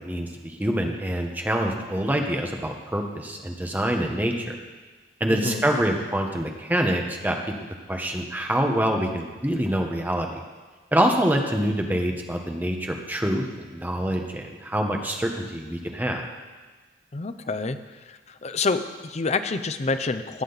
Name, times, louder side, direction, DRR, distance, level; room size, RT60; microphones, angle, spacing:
voice 1, 0.0-4.6 5.2-7.4 7.9-10.4 10.9-16.3, equal, 10° right, 2 dB, 1.0 m, -25 dB
voice 2, 5.3-5.6 17.1-17.8 18.1-20.4, left 3 dB, 35° left, 10 dB, 0.5 m, -27 dB
18.0 x 7.5 x 4.0 m, 1.3 s
head